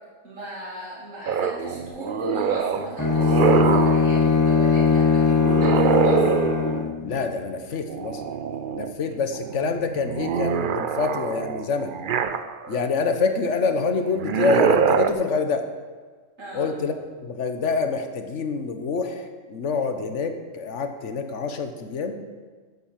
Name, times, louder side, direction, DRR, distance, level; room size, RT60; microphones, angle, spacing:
voice 1, 0.2-6.2 16.4-16.7, equal, 80° right, -5 dB, 3.2 m, -36 dB
sound 1, 1.3-4.1 5.4-7.0 7.9-8.9 9.3-12.8 14.1-15.1, right 7 dB, 55° right, 0.7 m, -24 dB
Bowed string instrument, 3.0-7.0, left 5 dB, 20° left, 0.5 m, -20 dB
voice 2, 7.0-8.2 8.7-11.9 12.7-15.7 16.5-17.0 17.2-22.2, left 4 dB, 65° left, 7 dB, 1.4 m, -26 dB
11.5 x 8.2 x 7.4 m, 1.5 s
omnidirectional pair, 1.3 m